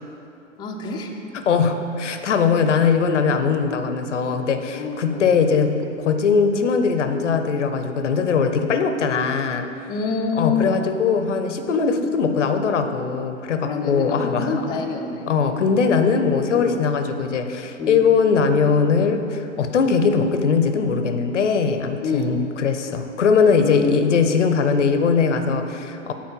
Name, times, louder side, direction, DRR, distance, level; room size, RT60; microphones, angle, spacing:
voice 1, 0.6-1.1 4.8-5.3 9.9-10.9 13.6-15.3 16.5-16.8 17.8-18.0 22.0-22.4 23.6-24.0, left 4 dB, 10° left, 0 dB, 0.5 m, -26 dB
voice 2, 1.3-9.7 10.3-14.7 15.3-26.1, left 5 dB, 75° left, 8 dB, 0.7 m, -20 dB
7.4 x 4.4 x 5.5 m, 2.7 s
figure-of-eight pair, 100°, 36 cm